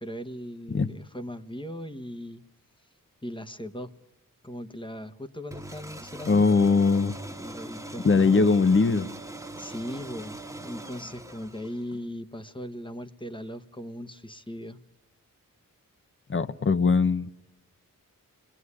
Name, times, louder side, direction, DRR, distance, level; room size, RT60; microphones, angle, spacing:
voice 1, 0.0-2.4 3.2-3.9 4.4-8.5 9.6-14.8, equal, 15° left, 1.2 m, -39 dB
sound 1, 5.5-12.0, right 1 dB, 10° right, 1.5 m, -41 dB
voice 2, 6.3-7.1 8.0-9.1 16.3-17.3, left 4 dB, 35° left, 0.9 m, -21 dB
28.0 x 21.0 x 9.8 m
wide cardioid pair, 80°, 33 cm